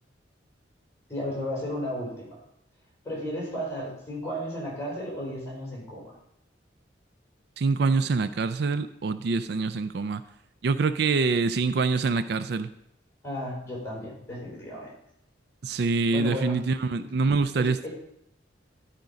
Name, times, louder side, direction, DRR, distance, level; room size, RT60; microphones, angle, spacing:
voice 1, 1.1-2.4 3.0-6.1 13.2-14.9 16.1-16.6 16.9-17.0 17.6-17.9, equal, 15° left, -4 dB, 4.5 m, -34 dB
voice 2, 7.6-10.2 10.6-12.7 15.6-17.9, right 4 dB, 60° right, 12 dB, 0.4 m, -25 dB
12.0 x 5.1 x 5.1 m, 0.75 s
head